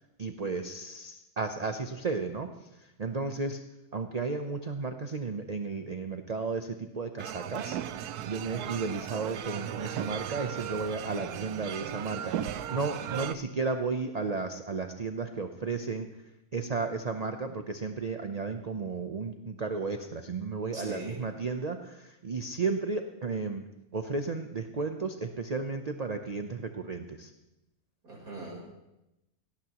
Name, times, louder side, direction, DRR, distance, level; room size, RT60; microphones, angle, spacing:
voice 1, 0.2-2.5 2.8-3.6 3.9-7.8 8.3-16.1 16.5-23.6 23.9-27.3, right 4 dB, 40° right, 6 dB, 0.6 m, -33 dB
sound 1, 7.2-13.3, right 10 dB, 85° right, 1.2 m, -36 dB
voice 2, 20.7-21.2 28.0-28.6, right 2 dB, 70° right, -2 dB, 4.7 m, -41 dB
17.5 x 17.5 x 3.0 m, 0.93 s
omnidirectional pair, 1.6 m